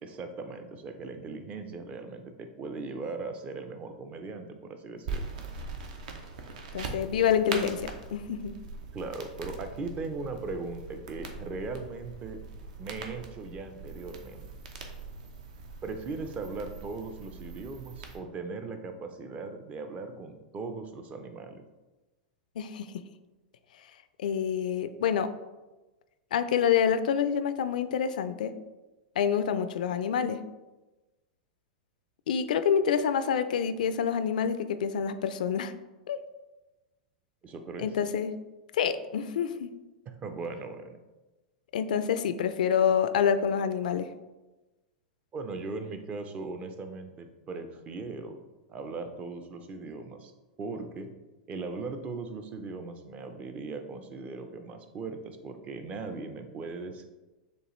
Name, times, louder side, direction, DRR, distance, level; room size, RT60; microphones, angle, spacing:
voice 1, 0.0-5.2 8.9-12.4 12.8-14.4 15.8-21.6 37.4-37.9 40.1-41.0 45.3-48.4 48.7-50.3 50.6-51.1 51.5-57.1, right 3 dB, 30° right, 7 dB, 0.5 m, -38 dB
sound 1, 5.0-18.2, right 4 dB, 65° right, 0.7 m, -42 dB
voice 2, 6.7-8.5 22.6-22.9 24.2-25.3 26.3-28.5 29.2-30.4 32.3-35.7 36.1-36.2 37.8-38.3 38.7-39.7 41.7-44.1, left 8 dB, 75° left, 11 dB, 0.3 m, -27 dB
6.6 x 2.4 x 3.1 m, 1.1 s
hypercardioid pair, 110°, 4 cm